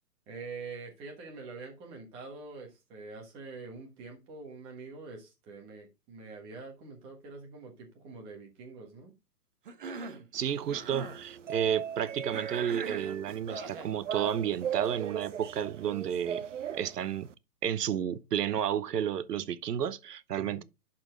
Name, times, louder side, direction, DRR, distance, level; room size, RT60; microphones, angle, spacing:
voice 1, 0.3-9.1 20.4-20.6, right 4 dB, 10° right, 1.3 m, -45 dB
Cough, 9.7-10.3 10.6-11.2 12.3-13.9, right 5 dB, 30° right, 1.0 m, -41 dB
sound 1, 10.3-17.3, right 9 dB, 50° right, 0.5 m, -38 dB
voice 2, 10.3-16.4 16.7-17.3 17.6-20.6, right 9 dB, 70° right, 0.9 m, -31 dB
11.5 x 4.5 x 3.6 m
hypercardioid pair, 170°, 49 cm